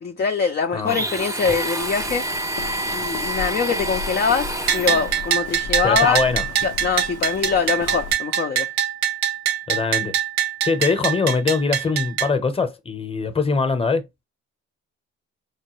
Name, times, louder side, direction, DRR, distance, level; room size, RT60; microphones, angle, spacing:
voice 1, 0.0-2.2 2.9-6.2 6.6-8.7, left 5 dB, 35° left, 0.6 m, -23 dB
Domestic sounds home sounds, 0.9-5.3, right 2 dB, 10° right, 0.5 m, -28 dB
Walk footsteps, 1.8-8.1, left 8 dB, 80° left, 0.6 m, -35 dB
Bell, 4.7-12.3, right 10 dB, 60° right, 0.7 m, -23 dB
voice 2, 5.8-6.4 9.7-10.1 10.6-14.0, left 4 dB, 20° left, 0.9 m, -22 dB
4.8 x 2.2 x 3.0 m
cardioid pair, 90°, 30 cm